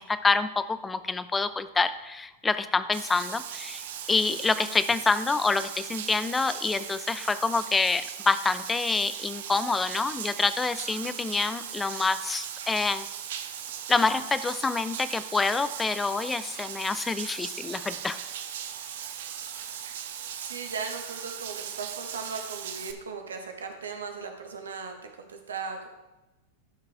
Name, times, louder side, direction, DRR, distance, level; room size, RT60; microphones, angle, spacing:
voice 1, 0.0-13.1 13.9-18.2, left 4 dB, 15° left, 13 dB, 0.5 m, -27 dB
Bathtub (filling or washing), 2.9-22.9, right 9 dB, 70° right, 0.8 m, -38 dB
voice 2, 20.4-25.9, right 5 dB, 85° right, 4 dB, 1.4 m, -37 dB
12.5 x 5.7 x 3.5 m, 1.0 s
hypercardioid pair, 100°, 0 cm